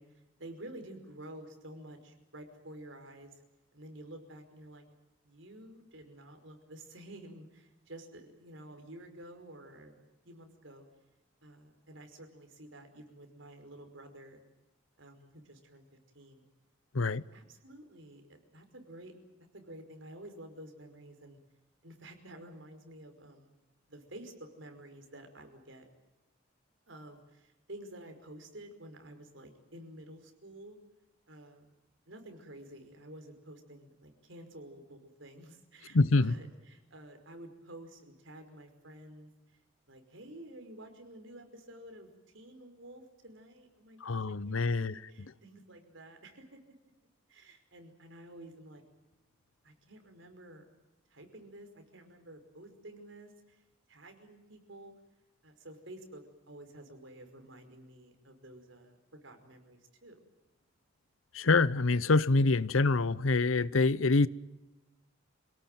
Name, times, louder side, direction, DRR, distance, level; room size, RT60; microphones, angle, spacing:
voice 1, 0.0-3.3 3.7-4.8 5.2-10.9 11.4-14.4 15.0-15.8 16.1-16.5 17.0-19.1 19.5-21.4 21.8-23.5 23.9-25.9 26.9-30.8 31.3-31.7 32.1-39.6 39.9-46.6 47.3-48.8 49.6-50.6 51.1-53.6 53.9-54.9 55.4-60.2, right 1 dB, 65° right, 5.3 m, -51 dB
voice 2, 35.9-36.3 44.0-44.9 61.3-64.3, left 3 dB, 90° left, 0.8 m, -26 dB
27.5 x 18.0 x 9.2 m
head